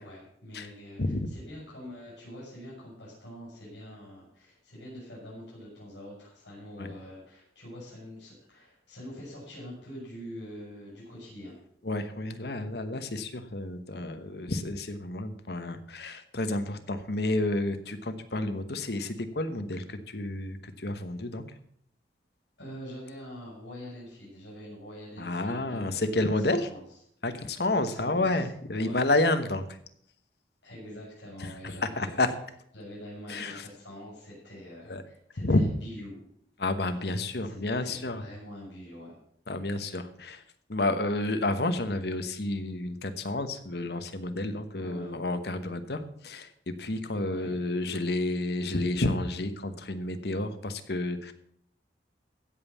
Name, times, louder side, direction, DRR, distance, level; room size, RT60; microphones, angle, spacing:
voice 1, 0.0-11.5 22.6-26.8 27.7-28.4 28.8-29.0 30.6-32.3 32.7-36.2 37.4-37.6 37.8-39.1 44.7-45.2 47.2-47.6, equal, 75° left, -6 dB, 6.1 m, -45 dB
voice 2, 11.8-21.5 25.2-26.7 27.2-29.7 31.4-32.3 33.3-33.7 34.9-35.0 35.4-35.6 36.6-38.2 39.5-40.4 40.7-51.3, left 2 dB, 60° left, 9 dB, 1.1 m, -30 dB
15.5 x 5.5 x 7.1 m, 0.70 s
head